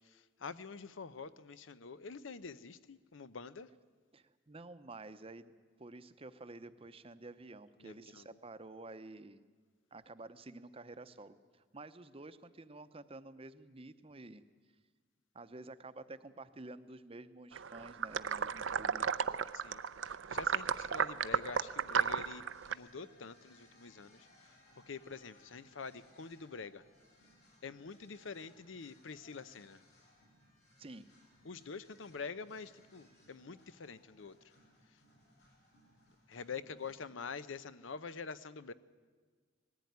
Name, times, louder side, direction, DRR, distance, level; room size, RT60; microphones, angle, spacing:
voice 1, 0.0-3.7 7.8-8.3 19.5-24.6 24.9-26.8 27.6-29.8 31.4-34.4 34.9-35.0 36.3-38.7, left 5 dB, 85° left, 15 dB, 0.7 m, -46 dB
voice 2, 4.1-9.4 9.9-14.4 15.3-19.0 30.8-31.1, right 2 dB, 30° right, 12 dB, 0.7 m, -51 dB
sound 1, 17.5-22.7, right 7 dB, 80° right, 0.6 m, -34 dB
sound 2, 22.5-37.0, left 1 dB, 60° left, 7.1 m, -66 dB
19.5 x 15.0 x 9.4 m, 1.5 s
head